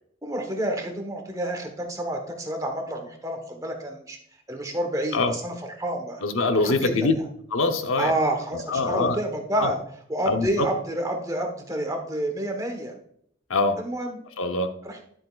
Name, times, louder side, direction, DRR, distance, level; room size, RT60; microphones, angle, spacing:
voice 1, 0.2-4.2 4.5-6.2 6.5-7.2 8.0-9.8 10.1-12.9 13.8-14.2 14.8-15.0, right 1 dB, 15° right, 3 dB, 1.2 m, -29 dB
voice 2, 6.2-7.1 7.5-8.1 8.5-9.2 9.6-9.7 10.3-10.7 13.5-13.8 14.4-14.7, left 3 dB, 90° left, 7 dB, 0.8 m, -23 dB
10.5 x 7.8 x 2.4 m, 0.67 s
head